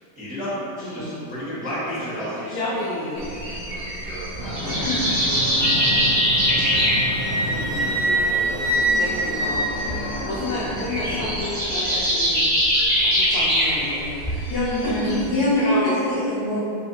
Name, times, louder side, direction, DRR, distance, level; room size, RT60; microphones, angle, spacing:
voice 1, 0.1-2.8 3.4-5.1 6.7-6.8 7.2-7.3, equal, 5° right, -15 dB, 1.0 m, -33 dB
voice 2, 0.8-1.3 2.5-3.2 4.8-5.0 7.4-7.9 9.0-12.4 13.1-14.3 15.0-15.3 15.6-16.0, left 2 dB, 85° left, -7 dB, 0.8 m, -30 dB
sound 1, 3.2-15.3, equal, 35° right, 1.1 m, -24 dB
Fixed-wing aircraft airplane, 4.4-11.4, equal, 55° right, 1.0 m, -31 dB
Wind instrument woodwind instrument, 5.6-10.2, right 1 dB, 80° right, 1.5 m, -25 dB
voice 3, 14.5-16.6, left 1 dB, 60° left, -12 dB, 1.2 m, -23 dB
4.1 x 2.7 x 2.6 m, 2.6 s
omnidirectional pair, 2.3 m